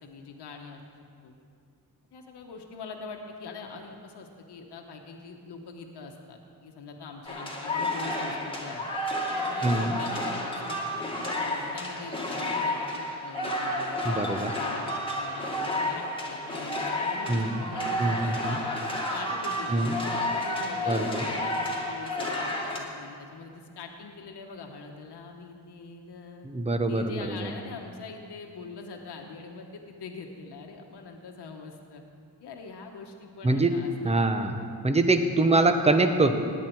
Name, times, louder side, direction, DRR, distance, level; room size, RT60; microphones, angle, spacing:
voice 1, 0.0-1.4 2.1-8.8 9.3-14.0 14.5-18.7 19.1-19.8 20.1-22.4 22.7-26.5 26.9-32.0 32.4-34.1 34.4-34.8 35.3-35.6, left 4 dB, 80° left, 2 dB, 1.3 m, -43 dB
sound 1, 7.3-22.8, left 1 dB, 15° left, 1.9 m, -31 dB
voice 2, 9.6-9.9 14.0-14.5 17.3-17.6 18.0-18.6 19.7-20.0 20.9-21.3 26.4-27.5 33.4-34.6 34.8-36.3, right 2 dB, 15° right, 7 dB, 0.9 m, -24 dB
17.0 x 10.0 x 4.6 m, 2.3 s
cardioid pair, 105°, 40 cm